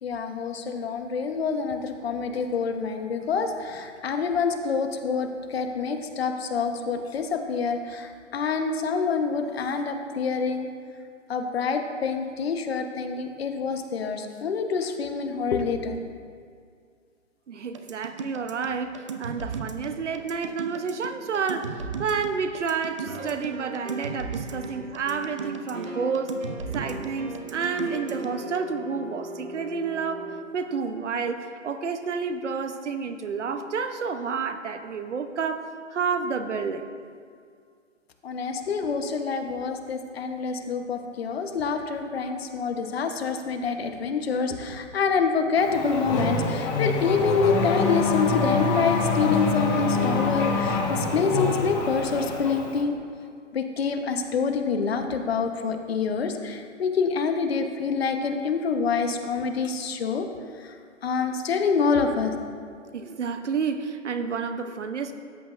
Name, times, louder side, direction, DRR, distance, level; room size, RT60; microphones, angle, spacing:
voice 1, 0.0-10.7 11.3-16.0 38.2-53.0 53.5-60.3 60.6-60.7 61.0-62.3, left 5 dB, 50° left, 6 dB, 1.1 m, -26 dB
voice 2, 17.5-26.4 26.7-30.3 30.5-36.9 62.9-65.1, right 5 dB, 65° right, 8 dB, 0.9 m, -30 dB
sound 1, 17.7-28.6, right 6 dB, 25° right, 0.4 m, -36 dB
sound 2, 23.1-24.2 24.5-30.4, right 1 dB, 90° right, 1.6 m, -38 dB
Race car auto racing / Accelerating revving vroom, 45.6-52.8, left 3 dB, 25° left, 1.3 m, -26 dB
13.5 x 8.8 x 2.6 m, 2.2 s
figure-of-eight pair, 135°, 38 cm